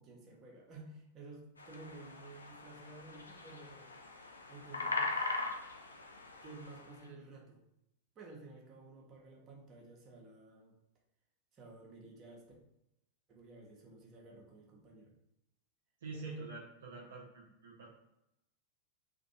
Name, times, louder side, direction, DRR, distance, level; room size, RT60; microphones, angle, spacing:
voice 1, 0.0-3.9 4.5-5.4 6.4-7.6 8.2-10.7 11.5-12.5 13.3-15.1 16.1-16.5, right 3 dB, 30° right, -2 dB, 0.7 m, -53 dB
sound 1, 1.6-6.9, left 3 dB, 75° left, 0.3 m, -40 dB
voice 2, 16.0-17.9, right 3 dB, 60° right, -2 dB, 0.5 m, -47 dB
2.5 x 2.2 x 2.7 m, 0.86 s
figure-of-eight pair, 90°, 0 cm